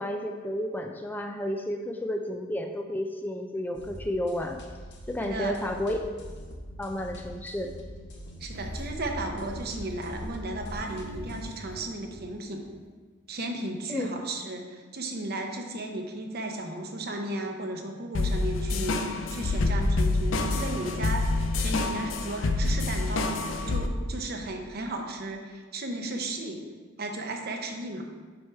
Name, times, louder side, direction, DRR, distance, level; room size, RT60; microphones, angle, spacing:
voice 1, 0.0-4.6 5.1-6.0 6.8-7.7 13.9-14.1, left 1 dB, 10° left, 3 dB, 0.4 m, -31 dB
sound 1, 3.7-11.6, equal, 60° left, 1.0 m, -44 dB
voice 2, 5.2-5.6 8.4-12.6 13.3-23.3 23.7-26.6 27.0-28.1, right 2 dB, 55° right, 3 dB, 0.8 m, -35 dB
sound 2, 8.5-12.6, left 1 dB, 80° right, 1.1 m, -41 dB
sound 3, 18.1-23.9, left 2 dB, 80° left, 0.5 m, -27 dB
6.2 x 4.9 x 4.5 m, 1.5 s
head